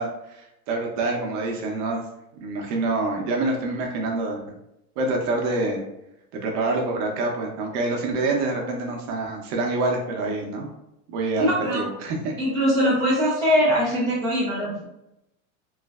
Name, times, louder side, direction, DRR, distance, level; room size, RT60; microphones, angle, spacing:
voice 1, 0.0-2.0 2.4-4.6 5.0-5.8 6.4-10.7 11.1-12.3, right 2 dB, 40° right, 1 dB, 0.6 m, -26 dB
voice 2, 11.5-11.8 12.4-14.8, equal, 10° left, -10 dB, 0.4 m, -22 dB
3.1 x 2.4 x 2.3 m, 0.84 s
supercardioid pair, 140°, 44 cm